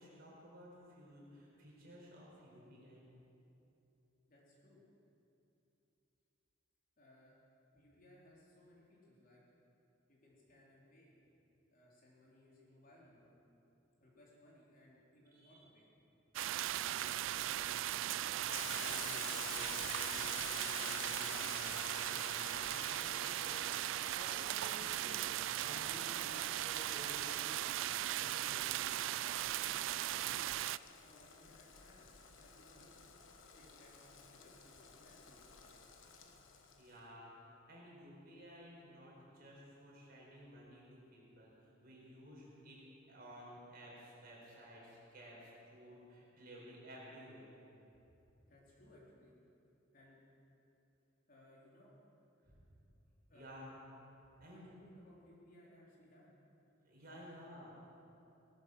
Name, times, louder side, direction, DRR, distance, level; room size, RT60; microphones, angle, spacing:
voice 1, 0.0-3.0 15.3-15.6 16.9-28.8 35.6-42.8 43.1-47.6 52.4-52.6 53.3-53.7 54.4-54.7 56.8-57.7, equal, 50° right, -4 dB, 4.6 m, -55 dB
voice 2, 4.3-4.8 7.0-7.4 7.7-9.4 10.1-11.1 11.7-13.4 14.0-15.9 29.5-30.5 31.0-33.0 33.5-35.4 48.5-49.3 49.9-50.2 51.3-51.9 53.3-53.7 54.5-56.3 57.1-57.6, left 1 dB, 45° left, -5 dB, 3.6 m, -63 dB
sound 1, 16.4-30.8, right 13 dB, 70° right, 0.3 m, -38 dB
Boiling, 18.5-36.9, left 6 dB, 75° left, 1.3 m, -51 dB
18.0 x 12.5 x 6.2 m, 2.8 s
head